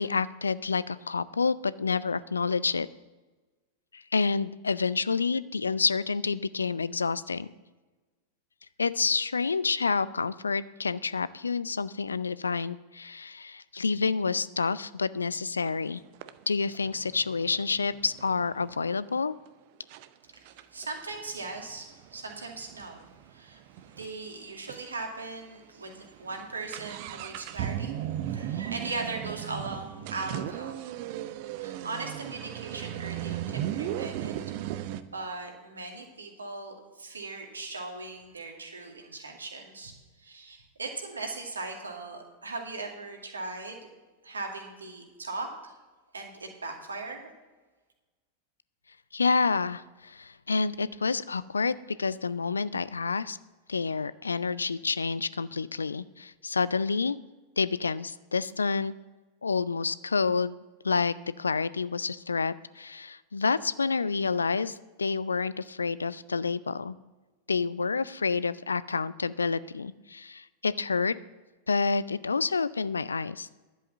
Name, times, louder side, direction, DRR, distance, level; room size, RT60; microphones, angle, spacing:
voice 1, 0.0-2.9 3.9-7.5 8.8-16.0 16.5-19.3 49.1-53.4 53.7-57.2 57.6-58.9 59.4-60.6 60.8-66.9 67.5-71.1 71.7-73.5, left 4 dB, 75° left, 18 dB, 0.4 m, -28 dB
sound 1, 15.6-15.8 16.2-18.9 19.5-19.6 19.9-20.1 20.5-24.1 24.4-24.5 24.7-24.8 25.4-25.6 25.9-35.0, right 11 dB, 45° right, 0.6 m, -36 dB
voice 2, 20.3-30.8 31.6-34.3 35.1-39.9 40.2-43.9 44.2-45.8 46.1-47.3, right 3 dB, 75° right, 2 dB, 2.3 m, -39 dB
11.0 x 7.8 x 7.3 m, 1.2 s
figure-of-eight pair, 90°, 0 cm